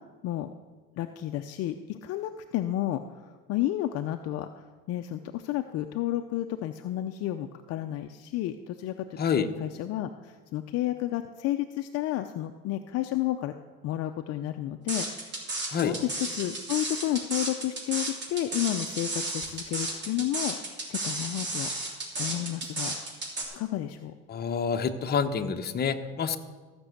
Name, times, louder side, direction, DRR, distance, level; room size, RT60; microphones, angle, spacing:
voice 1, 1.0-3.0 3.5-13.5 13.8-20.6 20.9-21.7 22.2-23.0 23.5-24.1, left 13 dB, 55° left, 7 dB, 0.6 m, -31 dB
sound 1, 14.9-23.4, right 2 dB, 40° right, 3.3 m, -33 dB
voice 2, 24.3-26.4, left 6 dB, 35° left, 5 dB, 1.0 m, -27 dB
15.0 x 6.2 x 8.0 m, 1.4 s
supercardioid pair, 110°, 29 cm